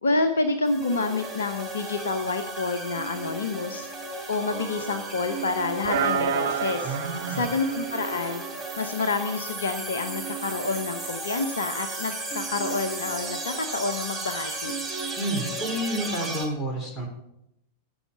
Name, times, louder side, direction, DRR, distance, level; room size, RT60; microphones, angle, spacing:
voice 1, 0.0-8.4 8.8-14.7, left 3 dB, 70° left, 9 dB, 0.8 m, -28 dB
sound 1, 0.6-16.4, right 3 dB, 5° right, 3.4 m, -35 dB
sound 2, 4.5-5.5 5.8-8.6, right 6 dB, 65° right, 1.0 m, -30 dB
voice 2, 6.8-7.4 15.2-17.1, right 1 dB, 20° left, 2 dB, 3.3 m, -30 dB
15.0 x 5.7 x 5.5 m, 0.82 s
figure-of-eight pair, 90°, 0 cm